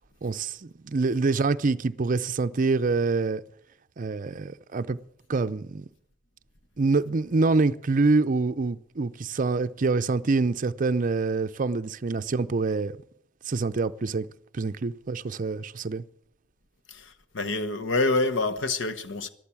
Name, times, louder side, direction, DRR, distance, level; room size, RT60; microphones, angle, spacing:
voice 1, 0.2-3.4 4.0-5.0 5.3-5.9 6.8-12.9 13.5-14.3 14.5-16.0, right 3 dB, 40° right, 0.5 m, -26 dB
voice 2, 16.9-19.3, left 2 dB, 70° left, 1.1 m, -27 dB
13.5 x 12.5 x 7.1 m
head